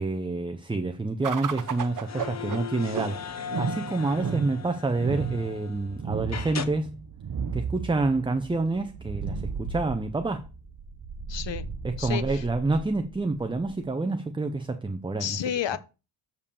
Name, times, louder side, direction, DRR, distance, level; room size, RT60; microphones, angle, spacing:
voice 1, 0.0-7.0 7.5-10.5 11.8-15.4, right 3 dB, 10° right, 0.4 m, -28 dB
sound 1, 1.2-13.8, right 6 dB, 40° right, 0.7 m, -35 dB
sound 2, 1.5-5.9 6.3-6.7, left 7 dB, 35° left, 0.8 m, -38 dB
voice 2, 11.3-11.7 12.0-12.4 15.2-15.8, left 10 dB, 60° left, 0.9 m, -30 dB
6.9 x 5.4 x 6.8 m
wide cardioid pair, 170°, 50 cm